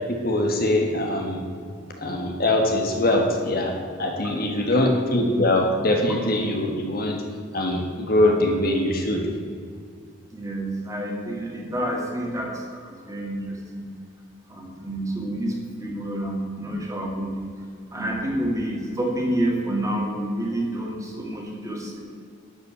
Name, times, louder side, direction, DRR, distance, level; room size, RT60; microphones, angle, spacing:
voice 1, 0.1-1.4 2.0-7.2 7.5-9.3, left 1 dB, 45° left, 2 dB, 1.4 m, -22 dB
voice 2, 4.5-4.8 10.3-13.9 14.5-17.5 17.9-22.0, right 1 dB, 15° right, -1 dB, 2.1 m, -29 dB
11.5 x 5.8 x 8.3 m, 2.3 s
head